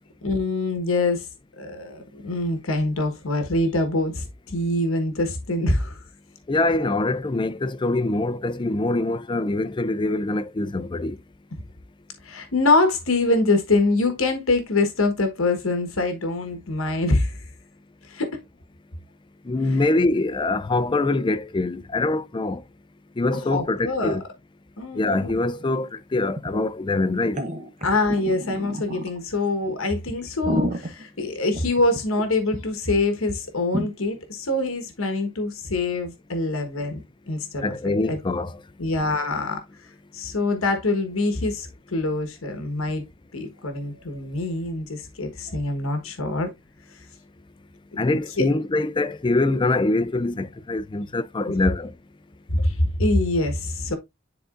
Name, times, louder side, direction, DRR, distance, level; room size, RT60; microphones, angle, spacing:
voice 1, 0.2-1.3 1.6-6.0 11.5-11.6 12.2-17.4 18.0-18.3 23.5-24.2 24.8-25.3 27.8-37.0 37.3-38.2 38.8-39.6 40.1-43.0 43.3-46.5 48.4-48.5 52.5-54.0, left 2 dB, 70° left, 1.3 m, -24 dB
voice 2, 6.5-11.2 19.5-22.6 23.2-24.2 24.9-27.4 37.6-38.5 48.0-51.9, left 2 dB, 20° left, 0.4 m, -24 dB
sound 1, 25.3-25.4 25.6-25.7 26.3-26.7 27.2-29.2 29.7-29.8 30.2-32.2 32.5-32.6 32.9-33.0 33.3-33.4 33.7-33.9, right 1 dB, 35° right, 0.9 m, -30 dB
10.5 x 3.8 x 2.5 m
head